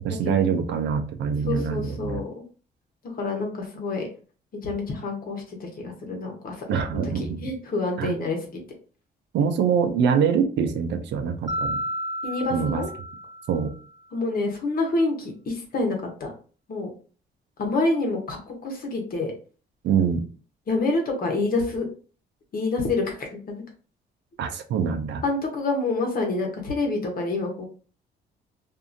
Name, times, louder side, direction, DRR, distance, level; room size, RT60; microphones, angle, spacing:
voice 1, 0.0-2.2 6.7-7.4 8.0-8.1 9.3-11.8 12.5-12.8 13.5-13.7 19.8-20.2 24.4-25.2, right 7 dB, 75° right, 8 dB, 0.5 m, -24 dB
voice 2, 1.5-2.3 3.1-4.1 4.6-8.6 12.2-12.9 14.1-16.3 16.7-16.9 17.6-19.3 20.7-21.9 22.5-23.6 25.2-27.7, left 3 dB, 50° left, 2 dB, 1.1 m, -27 dB
Mallet percussion, 11.5-13.9, equal, 20° right, 1.1 m, -32 dB
2.6 x 2.4 x 2.6 m, 0.39 s
cardioid pair, 85°, 19 cm